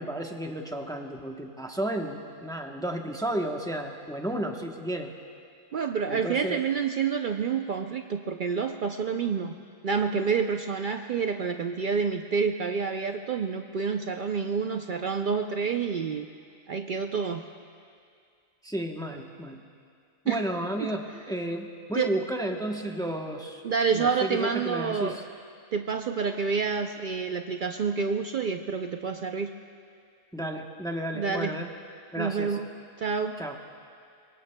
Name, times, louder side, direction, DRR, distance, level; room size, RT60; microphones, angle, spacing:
voice 1, 0.0-5.1 6.1-6.6 18.6-19.6 20.2-23.6 23.9-25.2 30.3-31.7 32.1-32.6 33.4-33.6, right 1 dB, 5° left, 2 dB, 0.6 m, -32 dB
voice 2, 5.7-9.5 9.8-16.3 16.7-17.4 20.3-20.4 20.8-20.9 21.9-22.1 23.6-25.2 25.7-29.5 31.1-31.6 32.2-32.7 33.0-33.4, right 5 dB, 85° right, 5 dB, 0.4 m, -28 dB
25.0 x 23.0 x 2.2 m, 2.3 s
omnidirectional pair, 1.5 m